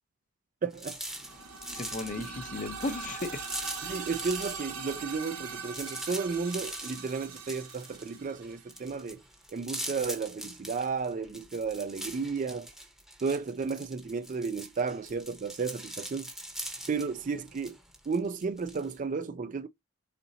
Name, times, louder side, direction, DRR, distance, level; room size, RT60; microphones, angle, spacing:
voice 1, 0.6-1.0 2.2-2.3 3.8-9.2 9.5-12.7 13.2-16.3 16.9-17.8 18.1-19.7, right 5 dB, 35° right, 0.3 m, -33 dB
sound 1, 0.7-4.6 4.9-19.0, right 1 dB, ahead, 0.8 m, -42 dB
sound 2, 1.1-9.0, right 5 dB, 80° right, 1.0 m, -41 dB
voice 2, 1.7-3.5 3.8-4.1, left 2 dB, 35° left, 0.6 m, -36 dB
4.2 x 3.8 x 2.7 m
head